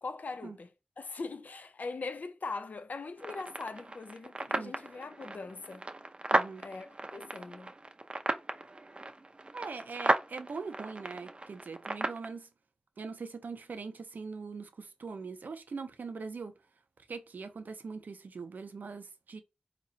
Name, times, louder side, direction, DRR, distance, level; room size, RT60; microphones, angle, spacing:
voice 1, 0.0-0.7 1.0-5.9 6.6-7.7, left 3 dB, 65° left, 0.5 m, -41 dB
sound 1, 3.2-12.3, right 2 dB, 35° right, 0.5 m, -35 dB
voice 2, 6.3-6.6 9.5-12.5 13.0-16.5 17.1-19.4, right 4 dB, 85° right, 0.6 m, -42 dB
4.0 x 2.9 x 2.7 m
cardioid pair, 55°, 3 cm